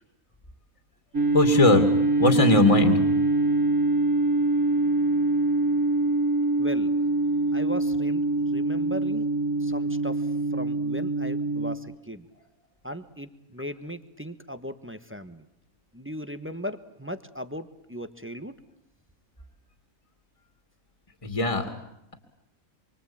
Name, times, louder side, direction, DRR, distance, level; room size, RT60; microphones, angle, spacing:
sound 1, 1.1-11.8, right 2 dB, 75° right, 2.4 m, -24 dB
voice 1, 1.3-1.9 2.2-3.0 21.2-21.7, left 2 dB, 20° left, 6 dB, 2.5 m, -19 dB
voice 2, 6.6-6.9 7.5-9.3 9.6-10.3 10.5-12.3 12.8-15.4 15.9-18.6, equal, 10° right, 9 dB, 1.2 m, -37 dB
27.5 x 24.5 x 8.8 m, 0.80 s
omnidirectional pair, 1.5 m